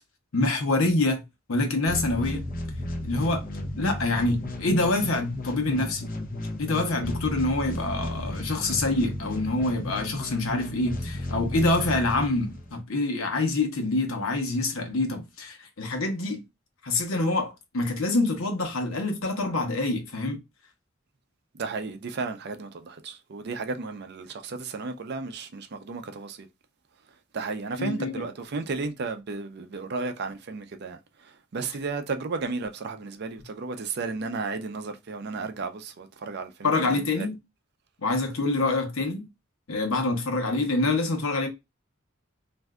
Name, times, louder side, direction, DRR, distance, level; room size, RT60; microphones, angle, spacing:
voice 1, 0.3-1.2 1.5-2.4 3.0-3.4 3.8-6.1 6.6-16.4 16.8-20.4 27.8-28.2 36.6-37.4 38.0-39.3 39.7-41.5, left 2 dB, 85° left, 0.9 m, -26 dB
sound 1, 1.9-12.8, left 1 dB, 45° left, 0.6 m, -34 dB
voice 2, 21.6-26.5 27.3-37.3, right 4 dB, 55° right, 0.5 m, -34 dB
2.6 x 2.2 x 3.4 m
head